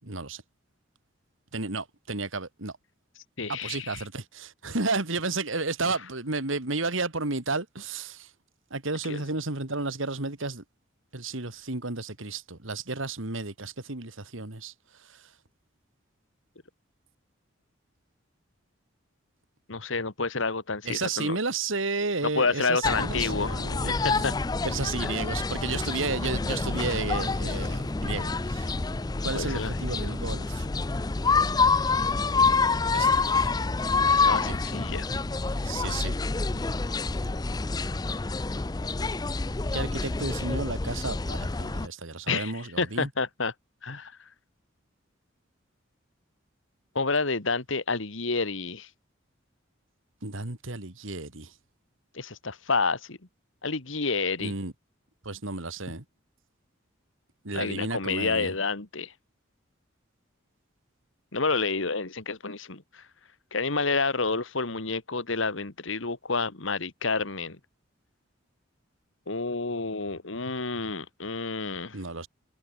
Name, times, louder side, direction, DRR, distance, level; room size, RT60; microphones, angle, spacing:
voice 1, 0.0-0.4 1.5-2.7 3.5-8.3 8.7-10.6 11.1-14.7 15.0-15.3 20.8-24.4 24.6-28.7 29.2-30.7 32.9-33.2 34.2-34.6 35.6-36.1 39.7-43.1 50.2-51.5 54.4-54.7 55.2-56.0 57.4-58.5 71.9-72.3, right 3 dB, 80° right, 2.6 m, -32 dB
voice 2, 3.4-4.0 9.1-9.2 19.7-21.4 22.4-24.3 25.0-25.1 29.3-30.2 34.0-35.1 42.3-43.5 43.8-44.1 47.0-48.9 52.1-53.2 53.6-54.5 57.5-59.1 61.3-63.0 63.5-67.6 69.3-72.0, left 4 dB, 75° left, 1.9 m, -29 dB
sound 1, 22.8-41.9, left 4 dB, 20° left, 0.5 m, -27 dB
head